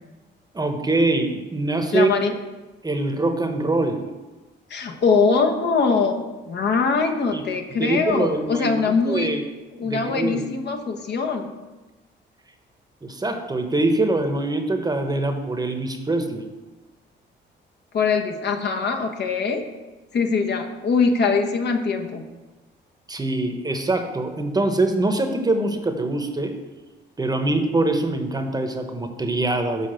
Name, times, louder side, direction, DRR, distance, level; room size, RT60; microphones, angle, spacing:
voice 1, 0.5-2.1 2.8-4.0 7.3-7.4 7.8-8.8 9.1-9.4 9.8-10.5 13.0-16.5 23.1-26.6 27.2-29.9, right 2 dB, 20° right, 5 dB, 1.0 m, -23 dB
voice 2, 1.9-2.4 4.7-9.3 9.8-11.5 17.9-19.6 20.1-22.2, left 4 dB, 60° left, 4 dB, 1.0 m, -22 dB
6.8 x 5.0 x 6.3 m, 1.2 s
cardioid pair, 90°, 20 cm